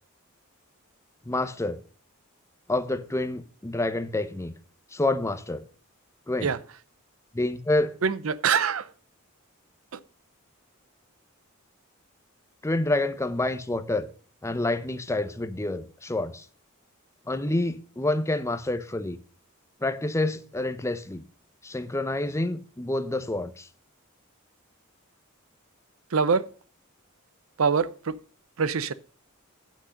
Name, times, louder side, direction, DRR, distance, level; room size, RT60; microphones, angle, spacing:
voice 1, 1.3-1.8 2.7-4.5 4.9-5.6 6.3-6.5 7.3-8.0 12.6-14.1 14.4-16.5 17.3-19.2 19.8-21.2 21.6-23.7, left 2 dB, 15° left, 0.7 m, -28 dB
voice 2, 8.0-8.9 26.1-26.4 27.6-28.1 28.6-28.9, right 6 dB, 70° right, 0.6 m, -24 dB
8.4 x 6.2 x 6.4 m
head